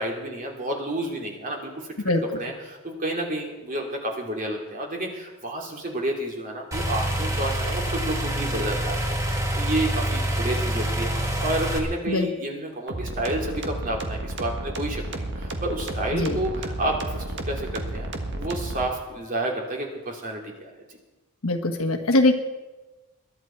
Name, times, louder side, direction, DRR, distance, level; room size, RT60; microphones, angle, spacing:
voice 1, 0.0-1.9 2.3-9.0 9.2-20.8, right 1 dB, 40° right, 0 dB, 2.9 m, -30 dB
voice 2, 2.0-2.4 12.1-12.3 16.1-16.4 21.4-22.3, left 2 dB, 70° left, 5 dB, 1.3 m, -22 dB
sound 1, 6.7-11.8, right 1 dB, 15° right, 1.8 m, -26 dB
sound 2, 12.9-18.9, right 1 dB, 55° right, 1.6 m, -32 dB
22.0 x 11.5 x 4.5 m, 1.1 s
head